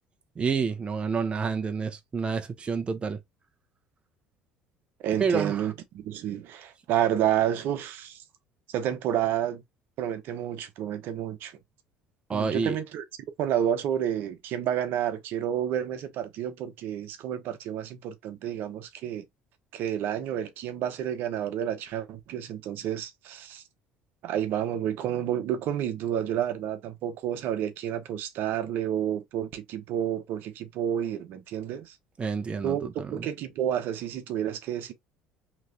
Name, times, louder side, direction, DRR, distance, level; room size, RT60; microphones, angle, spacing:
voice 1, 0.4-3.2 5.2-5.6 12.3-12.8 32.2-33.3, right 5 dB, 30° right, 0.6 m, -29 dB
voice 2, 5.0-8.2 8.7-9.6 10.0-11.6 12.3-13.0 13.4-19.3 19.7-23.6 24.2-32.0 32.6-34.9, right 10 dB, 65° right, 0.8 m, -30 dB
3.0 x 2.4 x 3.1 m
supercardioid pair, 85°, 4 cm